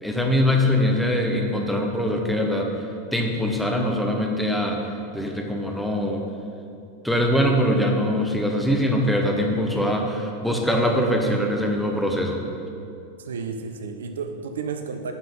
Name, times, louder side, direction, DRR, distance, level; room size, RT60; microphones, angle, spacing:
voice 1, 0.0-2.7 3.1-4.8 5.1-6.3 7.0-12.4, equal, ahead, 1 dB, 1.1 m, -22 dB
voice 2, 13.2-15.1, right 5 dB, 65° right, 6 dB, 0.6 m, -32 dB
10.0 x 5.7 x 5.6 m, 2.6 s
figure-of-eight pair, 90°, 0 cm